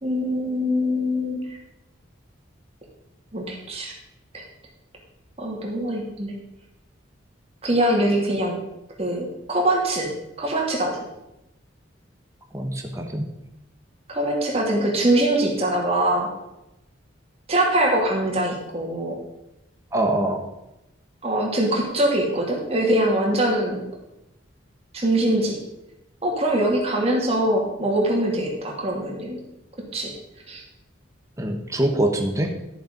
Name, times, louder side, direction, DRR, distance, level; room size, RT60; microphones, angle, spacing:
voice 1, 0.0-1.6 3.3-3.9 4.3-4.4 5.4-6.3 7.6-8.6 9.0-10.1 10.4-11.0 14.1-16.3 17.5-19.2 21.2-23.9 24.9-25.6 26.2-29.4 29.9-30.1 30.5-30.6, right 1 dB, 30° right, -1 dB, 2.4 m, -23 dB
voice 2, 12.5-13.2 19.9-20.4 31.4-32.5, right 1 dB, 15° right, 3 dB, 1.1 m, -24 dB
12.0 x 6.7 x 5.2 m, 0.91 s
head